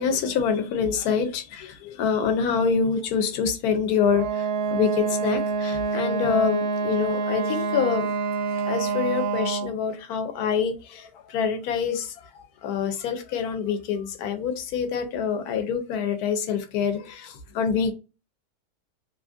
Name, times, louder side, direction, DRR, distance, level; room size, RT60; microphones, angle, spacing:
voice 1, 0.0-8.1 8.5-17.9, left 6 dB, 75° left, 1.1 m, -26 dB
Wind instrument woodwind instrument, 4.1-9.8, right 5 dB, 75° right, 1.1 m, -27 dB
2.8 x 2.5 x 2.4 m
omnidirectional pair, 1.7 m